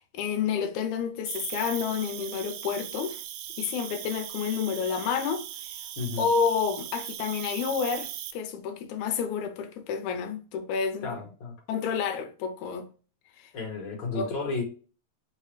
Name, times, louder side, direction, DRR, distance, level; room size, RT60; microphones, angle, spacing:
voice 1, 0.0-3.2 3.6-5.8 6.2-11.1 11.7-12.9 14.2-14.3, left 6 dB, 80° left, 2.1 m, -29 dB
Cricket, 1.3-8.3, right 12 dB, 80° right, 1.8 m, -39 dB
voice 2, 6.0-6.3 11.0-11.5 13.5-14.6, left 4 dB, 45° left, 2.0 m, -32 dB
5.2 x 2.8 x 3.2 m
omnidirectional pair, 3.4 m